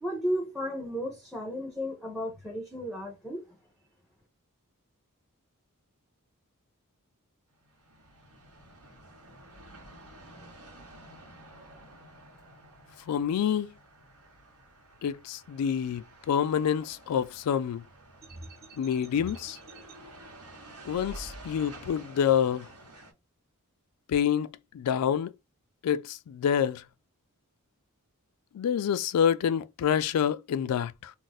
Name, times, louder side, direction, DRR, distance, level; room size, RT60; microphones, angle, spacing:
voice 1, 0.0-3.6, equal, ahead, 0.6 m, -34 dB
sound 1, 7.5-23.1, right 1 dB, 85° right, 1.1 m, -51 dB
voice 2, 13.1-13.7 15.0-17.8 18.8-19.6 20.9-22.7 24.1-24.5 24.7-25.3 25.8-26.8 28.5-31.1, left 8 dB, 85° left, 0.3 m, -27 dB
sound 2, 18.2-19.9 20.8-21.8, right 1 dB, 45° right, 0.6 m, -46 dB
2.4 x 2.1 x 3.9 m
head